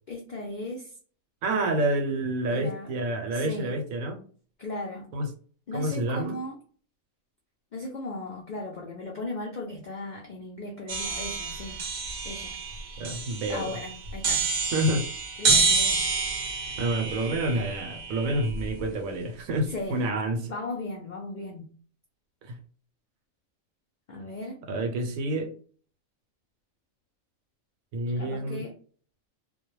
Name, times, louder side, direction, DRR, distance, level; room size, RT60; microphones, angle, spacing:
voice 1, 0.1-1.0 2.5-2.9 3.3-3.8 4.6-5.1 5.7-6.6 7.7-11.8 12.2-12.6 13.5-14.5 15.4-16.0 19.7-20.0 20.4-21.7 24.1-24.6 28.2-28.8, left 2 dB, 75° left, 0 dB, 0.4 m, -37 dB
voice 2, 1.4-4.2 5.1-5.3 5.7-6.4 13.0-13.7 14.7-15.1 15.4-15.6 16.8-20.5 22.4-22.6 24.7-25.5 27.9-28.6, right 1 dB, 90° right, 5 dB, 1.0 m, -28 dB
sound 1, 10.9-18.8, right 4 dB, 60° right, 0.6 m, -28 dB
2.2 x 2.1 x 3.0 m, 0.43 s
omnidirectional pair, 1.4 m